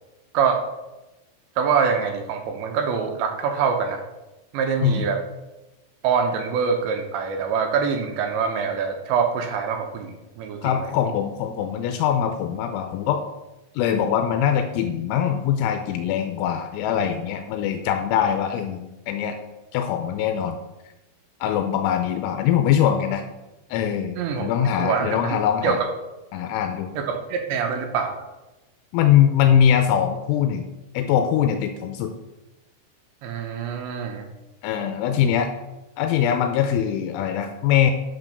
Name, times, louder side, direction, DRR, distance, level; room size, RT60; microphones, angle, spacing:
voice 1, 1.6-4.0 4.5-5.2 6.0-10.9 24.2-24.5 24.8-25.9 27.0-28.1 33.2-34.2, right 6 dB, 75° right, 4 dB, 2.9 m, -24 dB
voice 2, 10.6-13.2 13.7-19.4 19.7-20.6 21.4-23.2 23.7-25.8 26.3-26.9 28.9-30.7 30.9-32.1 34.6-35.5 36.0-37.9, left 9 dB, 85° left, 6 dB, 3.1 m, -22 dB
9.1 x 6.1 x 6.7 m, 1.0 s
omnidirectional pair, 5.5 m